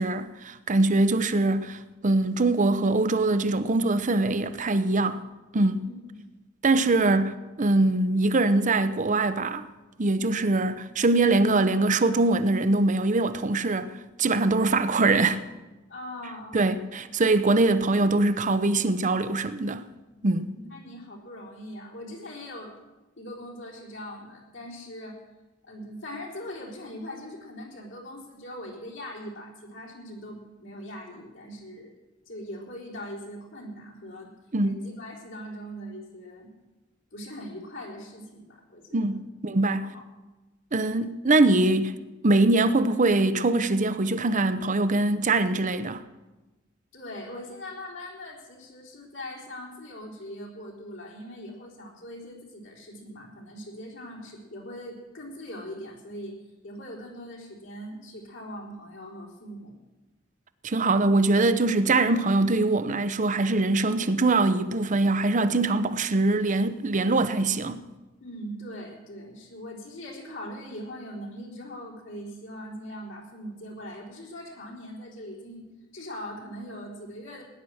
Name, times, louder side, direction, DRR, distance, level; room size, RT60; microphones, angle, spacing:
voice 1, 0.0-5.2 5.5-5.9 6.6-9.7 10.0-13.9 14.2-15.4 16.5-19.8 20.2-20.5 34.5-34.8 38.9-39.9 40.7-41.9 42.2-46.0 60.6-67.8, right 2 dB, 40° right, 0.7 m, -23 dB
voice 2, 5.8-6.2 15.9-16.8 20.4-22.7 23.2-25.2 25.6-31.9 32.3-34.3 34.6-36.5 37.1-39.3 39.8-40.0 46.9-56.4 56.6-59.7 68.2-75.7 75.9-77.4, equal, 70° left, 3.9 m, -41 dB
18.0 x 10.0 x 6.4 m
head